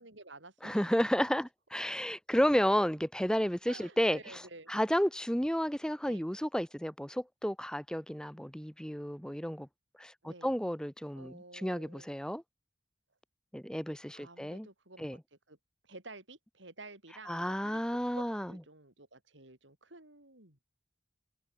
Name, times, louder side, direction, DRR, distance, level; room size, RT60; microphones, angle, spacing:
voice 1, 0.0-0.8 3.7-4.7 6.1-6.2 10.2-10.5 11.1-12.1 14.1-15.2 15.5-15.6 15.8-17.8 18.2-20.6, right 2 dB, 75° right, 6.5 m, -51 dB
voice 2, 0.6-4.4 4.7-9.7 10.0-12.4 13.5-14.7 15.0-15.2 17.3-18.5, equal, 5° left, 2.4 m, -32 dB
head